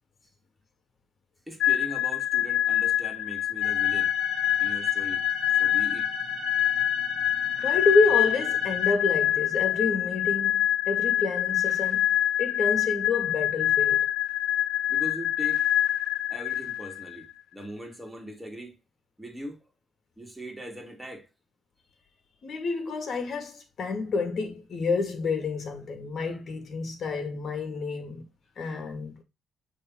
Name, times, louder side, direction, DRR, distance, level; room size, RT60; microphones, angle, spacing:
voice 1, 1.5-4.2 4.6-5.3 5.6-6.1 14.9-15.6 16.3-18.8 19.2-19.7 20.2-21.3, equal, 5° right, 2.6 m, -40 dB
sound 1, 1.6-17.2, left 12 dB, 80° left, 0.5 m, -25 dB
sound 2, 3.6-8.9, right 8 dB, 70° right, 0.9 m, -40 dB
voice 2, 7.6-12.1 12.4-14.1 22.4-28.2 28.6-29.2, left 4 dB, 55° left, 2.0 m, -28 dB
6.5 x 3.5 x 4.3 m
cardioid pair, 90°, 0 cm